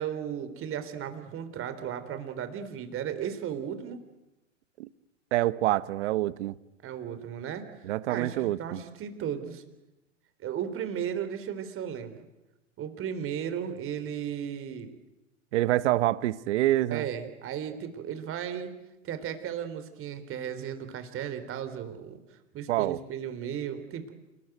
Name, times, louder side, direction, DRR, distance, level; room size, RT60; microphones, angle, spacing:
voice 1, 0.0-4.0 6.8-7.6 8.1-9.6 10.4-12.2 12.8-14.9 16.9-18.7 19.0-22.2 22.5-24.1, right 9 dB, 35° right, 3.9 m, -35 dB
voice 2, 5.3-6.5 7.8-8.8 15.5-17.1 22.7-23.0, right 15 dB, 60° right, 1.2 m, -26 dB
28.5 x 20.0 x 9.3 m
hypercardioid pair, 105°, 39 cm